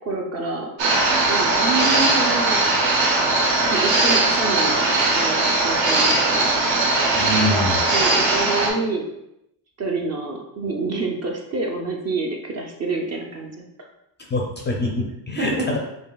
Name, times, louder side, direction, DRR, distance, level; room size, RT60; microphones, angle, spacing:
voice 1, 0.0-0.7 1.3-2.6 3.6-6.4 7.9-9.0 9.8-13.9 15.4-15.8, right 3 dB, 35° right, 1 dB, 0.5 m, -27 dB
sound 1, 0.8-8.7, right 2 dB, 70° right, 1.0 m, -19 dB
voice 2, 7.1-7.8 14.3-15.8, left 1 dB, 25° left, -1 dB, 0.4 m, -24 dB
5.2 x 2.6 x 2.3 m, 0.84 s
cardioid pair, 130°, 49 cm